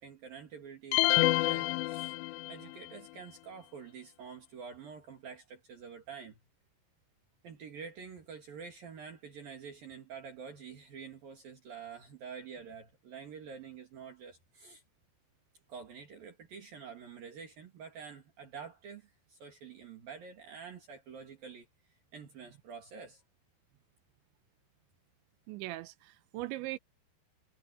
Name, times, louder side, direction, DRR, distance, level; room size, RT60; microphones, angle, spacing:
voice 1, 0.0-2.1 2.5-6.4 7.4-14.8 15.7-21.7 22.1-23.2, right 6 dB, 55° right, 3.9 m, -47 dB
sound 1, 0.9-2.7, left 21 dB, 80° left, 2.6 m, -28 dB
voice 2, 25.5-26.8, right 17 dB, 85° right, 3.0 m, -40 dB
omnidirectional pair, 5.4 m